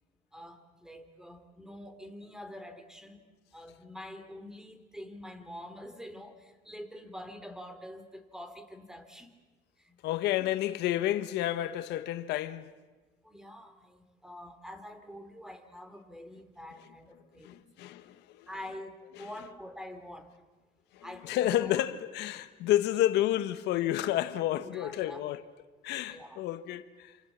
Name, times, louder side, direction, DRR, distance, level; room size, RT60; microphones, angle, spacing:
voice 1, 0.3-3.2 3.5-9.4 9.8-10.0 10.4-10.5 13.2-17.6 18.5-20.3 21.0-21.8 24.6-25.2 26.1-26.4, left 1 dB, 5° right, 3.4 m, -46 dB
voice 2, 10.0-12.7 17.4-18.5 19.2-19.3 20.9-25.4 25.8-27.1, left 13 dB, 85° left, 1.3 m, -30 dB
28.0 x 27.5 x 7.4 m
cardioid pair, 110°, 17 cm